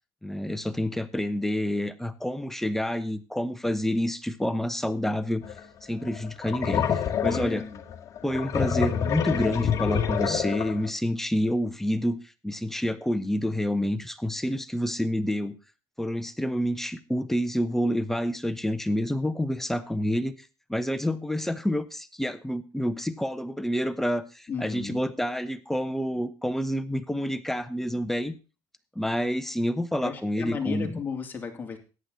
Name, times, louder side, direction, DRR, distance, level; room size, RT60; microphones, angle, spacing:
voice 1, 0.2-5.4 5.8-7.6 8.2-12.2 12.4-15.5 16.0-28.4 28.9-31.0, equal, 5° left, 11 dB, 1.0 m, -28 dB
sound 1, 5.4-5.6 6.1-10.9, left 8 dB, 45° left, 1.8 m, -27 dB
voice 2, 7.2-7.8 24.5-25.0 30.0-31.8, left 6 dB, 25° left, 2 dB, 3.1 m, -34 dB
14.0 x 10.0 x 4.1 m, 0.33 s
cardioid pair, 115°, 8 cm